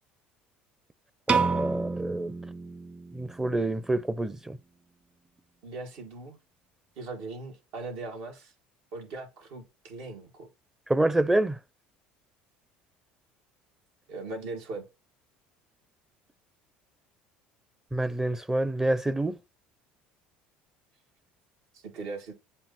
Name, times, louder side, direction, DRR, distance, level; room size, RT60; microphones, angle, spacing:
voice 1, 1.3-2.3 3.1-4.6 10.9-11.6 17.9-19.4, right 1 dB, 10° right, 0.6 m, -27 dB
Piano, 1.3-3.5, right 4 dB, 30° right, 1.5 m, -29 dB
voice 2, 5.6-6.4 7.0-8.5 8.9-10.5 14.1-14.9 21.7-22.3, right 3 dB, 70° right, 2.1 m, -39 dB
7.7 x 3.0 x 4.1 m
supercardioid pair, 80°, 4 cm